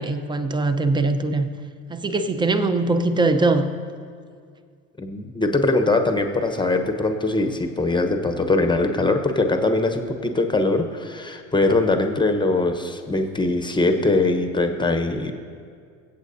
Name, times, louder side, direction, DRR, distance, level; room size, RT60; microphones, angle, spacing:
voice 1, 0.0-1.5 1.9-3.7, right 2 dB, 10° right, 9 dB, 0.7 m, -21 dB
voice 2, 5.0-15.3, left 2 dB, 10° left, 6 dB, 1.0 m, -22 dB
23.0 x 8.3 x 2.7 m, 2.2 s
hypercardioid pair, 85°, 40 cm